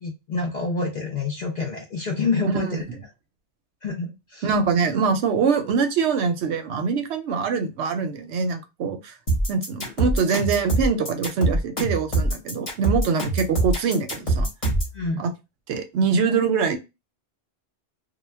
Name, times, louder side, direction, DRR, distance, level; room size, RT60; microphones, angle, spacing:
voice 1, 0.0-2.8 3.8-4.5 9.8-9.9 14.9-15.2, left 3 dB, 60° left, 0.5 m, -27 dB
voice 2, 4.4-9.2 9.5-14.5 15.2-15.3 15.7-16.8, right 5 dB, 70° right, 0.8 m, -24 dB
sound 1, 9.3-14.9, right 2 dB, 30° left, 1.0 m, -23 dB
2.2 x 2.2 x 3.2 m
omnidirectional pair, 1.2 m